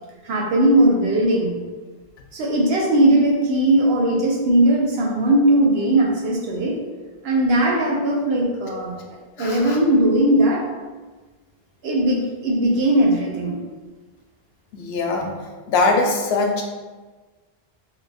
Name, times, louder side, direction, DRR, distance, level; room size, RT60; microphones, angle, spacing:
voice 1, 0.2-1.5 2.3-6.8 7.2-8.9 9.4-10.6 11.8-13.6, right 1 dB, 75° right, -1 dB, 0.9 m, -18 dB
voice 2, 9.4-9.8 14.7-15.3 15.7-16.6, left 3 dB, 85° left, 2 dB, 0.9 m, -21 dB
2.8 x 2.3 x 4.0 m, 1.3 s
omnidirectional pair, 1.0 m